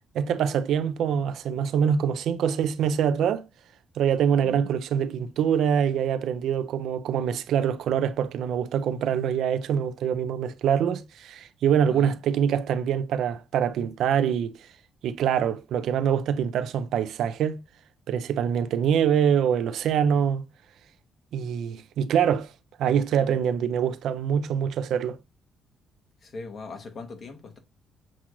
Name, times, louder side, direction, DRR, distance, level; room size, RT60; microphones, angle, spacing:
voice 1, 0.1-3.5 4.0-14.6 15.0-17.6 18.1-20.4 21.3-22.5 22.8-25.2, right 8 dB, 75° right, 0.4 m, -24 dB
voice 2, 4.4-4.7 11.9-12.2 26.2-27.6, left 4 dB, 50° left, 1.3 m, -40 dB
7.2 x 2.4 x 3.0 m
cardioid pair, 90°, 0 cm